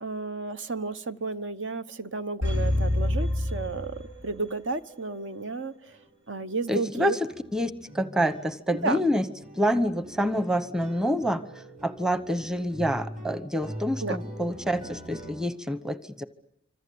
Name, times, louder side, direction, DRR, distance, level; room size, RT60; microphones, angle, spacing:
voice 1, 0.0-6.0 6.3-7.2 8.8-9.0 14.0-14.2, right 3 dB, 65° right, 1.0 m, -32 dB
sound 1, 2.4-4.6 4.9-5.0, left 1 dB, 90° right, 6.3 m, -27 dB
sound 2, 5.5-5.6 5.9-6.1 6.3-15.4, equal, 40° right, 6.0 m, -43 dB
voice 2, 6.7-9.3 9.5-16.2, equal, 5° right, 1.0 m, -27 dB
26.0 x 25.0 x 8.5 m
head